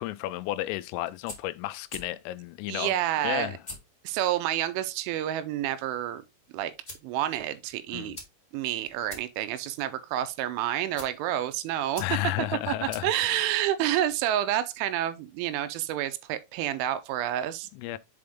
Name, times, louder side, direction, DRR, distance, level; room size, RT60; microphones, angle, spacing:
voice 1, 0.0-2.9 3.2-3.6 7.9-8.2 12.0-13.5 17.7-18.0, left 16 dB, 90° left, 3.2 m, -33 dB
sound 1, 1.0-14.3, left 2 dB, 40° left, 0.5 m, -49 dB
voice 2, 2.7-3.6 4.0-6.2 6.5-6.7 7.0-8.2 8.5-12.0 13.0-17.7, right 12 dB, 85° right, 3.1 m, -29 dB
7.7 x 4.3 x 3.6 m
omnidirectional pair, 5.7 m